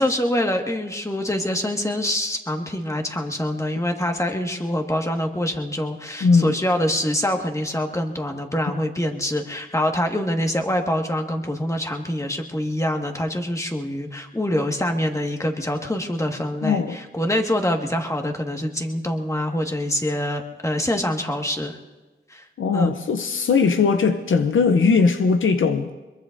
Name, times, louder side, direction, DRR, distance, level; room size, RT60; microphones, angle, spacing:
voice 1, 0.0-21.7 22.3-22.4 22.7-22.9, left 1 dB, 15° left, 2 dB, 1.7 m, -25 dB
voice 2, 6.2-6.6 16.6-17.0 22.6-25.9, left 5 dB, 85° left, 8 dB, 0.7 m, -19 dB
23.5 x 22.0 x 2.6 m, 1.2 s
cardioid pair, 55°, 20 cm